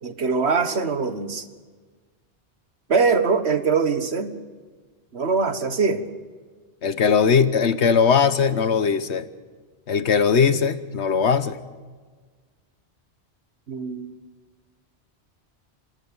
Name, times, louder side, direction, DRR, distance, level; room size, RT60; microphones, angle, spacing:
voice 1, 0.0-1.4 2.9-4.3 5.1-6.0 13.7-14.1, right 5 dB, 75° right, 10 dB, 1.8 m, -22 dB
voice 2, 6.8-9.3 9.9-11.6, left 6 dB, 85° left, 13 dB, 1.4 m, -19 dB
29.0 x 13.5 x 8.8 m, 1.4 s
omnidirectional pair, 1.1 m